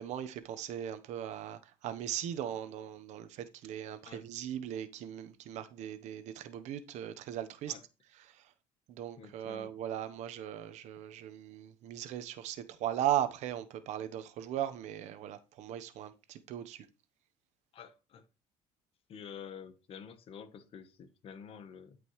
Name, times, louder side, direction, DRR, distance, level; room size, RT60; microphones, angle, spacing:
voice 1, 0.0-7.7 8.2-8.5 8.9-16.9, right 11 dB, 65° right, 1.0 m, -38 dB
voice 2, 9.2-9.7 17.7-18.2 19.1-22.0, left 7 dB, 50° left, 1.1 m, -49 dB
12.5 x 5.1 x 3.2 m
cardioid pair, 110°, 13 cm